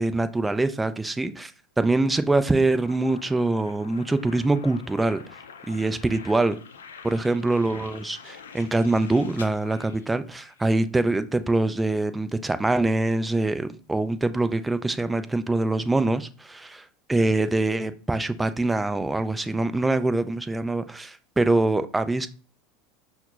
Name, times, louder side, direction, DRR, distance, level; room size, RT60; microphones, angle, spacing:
voice 1, 0.0-1.5 1.8-5.2 5.7-6.6 7.0-22.3, right 2 dB, 10° right, 0.3 m, -24 dB
sound 1, 2.9-10.7, left 6 dB, 90° left, 0.4 m, -46 dB
5.7 x 2.0 x 2.3 m
hypercardioid pair, 90°, 0 cm